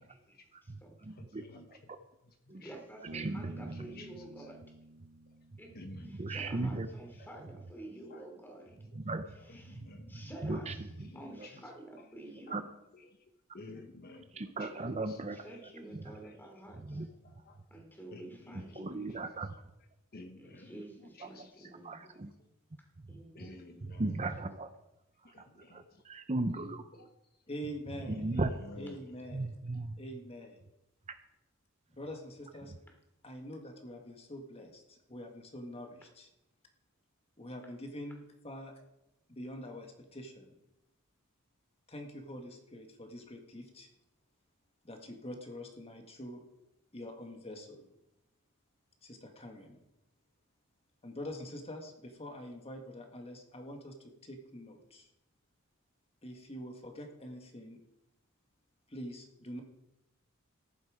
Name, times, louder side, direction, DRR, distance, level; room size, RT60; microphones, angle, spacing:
voice 1, 0.0-0.9 2.5-4.6 5.6-8.9 9.3-9.8 10.1-12.7 14.6-17.1 17.7-18.9 20.4-22.0 23.1-23.8 28.2-28.9, right 1 dB, 10° left, 1 dB, 3.1 m, -51 dB
voice 2, 1.1-1.4 1.7-1.8 2.5-2.6 3.1-3.7 6.1-6.9 9.0-9.2 9.7-9.9 10.4-11.1 11.4-11.5 12.5-12.6 14.3-15.4 15.9-16.0 16.9-17.1 18.8-19.5 21.8-22.3 24.0-24.7 25.7-25.8 26.3-26.8 28.2-28.5 29.3-30.0, right 2 dB, 30° right, 9 dB, 0.7 m, -36 dB
Bass guitar, 3.1-6.6, right 2 dB, 60° right, 0.8 m, -51 dB
voice 3, 9.7-10.1 13.5-14.2 14.6-14.7 17.5-17.6 18.1-18.2 18.8-19.3 20.1-20.7 23.4-24.0 25.3-25.8 28.6-28.9, left 2 dB, 45° left, 6 dB, 1.0 m, -50 dB
voice 4, 27.5-28.4 28.8-29.6 30.0-30.6 31.9-32.7 33.2-36.3 37.4-38.8 39.3-40.5 41.9-43.9 44.8-46.4 46.9-47.9 49.0-49.8 51.0-55.1 56.2-57.8 58.9-59.6, equal, 30° left, 4 dB, 1.8 m, -45 dB
14.5 x 11.0 x 5.0 m, 0.91 s
head